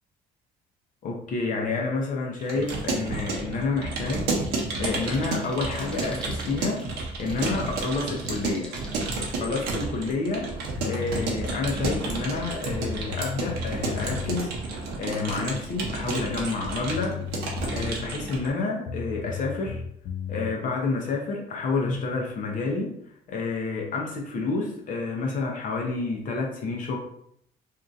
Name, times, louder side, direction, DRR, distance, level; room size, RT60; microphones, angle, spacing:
voice 1, 1.0-4.3 4.8-6.8 7.2-8.7 9.4-10.5 10.8-14.5 15.0-17.2 17.7-19.8 20.3-22.9 23.3-27.0, left 3 dB, 50° left, 0 dB, 0.8 m, -29 dB
Keyboard (musical) / Computer keyboard, 2.4-18.5, right 3 dB, 80° right, 0.8 m, -31 dB
sound 1, 4.3-9.3, equal, 5° left, 0.6 m, -47 dB
sound 2, 10.8-11.3 12.3-12.4 12.7-14.4 16.5-16.6 16.9-18.1 18.8-20.5, left 7 dB, 80° left, 0.4 m, -35 dB
2.8 x 2.5 x 2.6 m, 0.70 s
cardioid pair, 110°, 17 cm